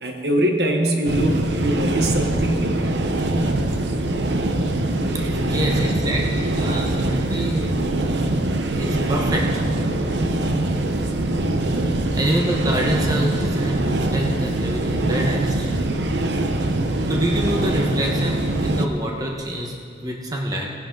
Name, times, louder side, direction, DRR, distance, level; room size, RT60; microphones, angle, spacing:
voice 1, 0.0-2.8, right 1 dB, 65° right, 3 dB, 1.2 m, -23 dB
sound 1, 1.1-18.9, right 1 dB, 85° right, 0.8 m, -23 dB
voice 2, 5.4-7.9 8.7-9.6 11.7-15.7 17.1-19.8 20.0-20.7, right 1 dB, 20° right, -1 dB, 1.2 m, -26 dB
18.5 x 10.5 x 3.9 m, 2.3 s
head